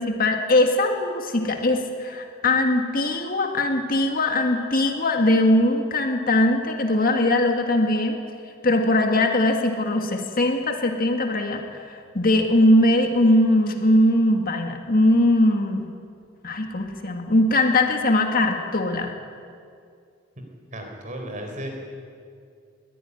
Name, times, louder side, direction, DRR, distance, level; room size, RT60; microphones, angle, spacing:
voice 1, 0.0-8.2 8.6-15.9 16.4-19.1, left 1 dB, 45° left, 4 dB, 1.9 m, -21 dB
voice 2, 20.7-21.9, equal, 40° right, 3 dB, 4.4 m, -34 dB
22.0 x 15.0 x 9.9 m, 2.3 s
head